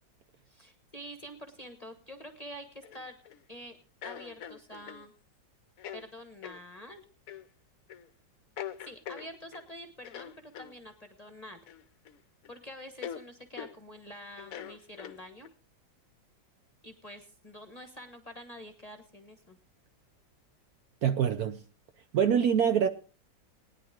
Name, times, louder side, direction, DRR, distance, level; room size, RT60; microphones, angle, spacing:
voice 1, 0.5-3.2 3.5-3.8 4.0-5.1 5.9-7.0 8.8-11.6 12.5-15.5 16.8-19.6, equal, 25° left, 1.0 m, -47 dB
sound 1, 2.8-3.4 4.0-5.1 5.8-6.1 6.4-6.6 7.3-7.5 7.9-8.1 8.6-9.7 10.0-10.7 11.7-12.2 12.4-12.5 13.0-13.2 13.6-13.8 14.4-15.5, left 9 dB, 60° left, 1.0 m, -43 dB
voice 2, 21.0-21.6 22.1-22.9, right 8 dB, 60° right, 1.1 m, -25 dB
20.0 x 9.9 x 3.6 m
omnidirectional pair, 2.0 m